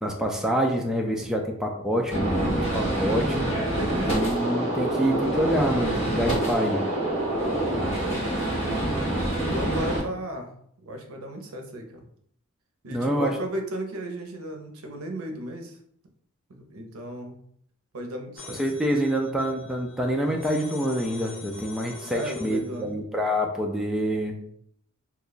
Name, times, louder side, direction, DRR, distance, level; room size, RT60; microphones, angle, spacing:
voice 1, 0.0-3.6 4.0-6.8 12.9-13.3 18.6-24.4, equal, ahead, 0 dB, 0.3 m, -26 dB
Gunshot gunfire, 2.1-10.0, right 1 dB, 30° left, 1.2 m, -26 dB
voice 2, 3.8-4.3 4.9-5.2 7.9-8.7 9.4-10.5 10.8-12.0 12.8-15.8 16.5-17.4 17.9-18.6 22.0-22.9, right 1 dB, 85° right, 4 dB, 0.6 m, -35 dB
sound 1, 18.3-22.8, left 4 dB, 60° left, 1.3 m, -45 dB
2.9 x 2.3 x 3.9 m, 0.67 s
head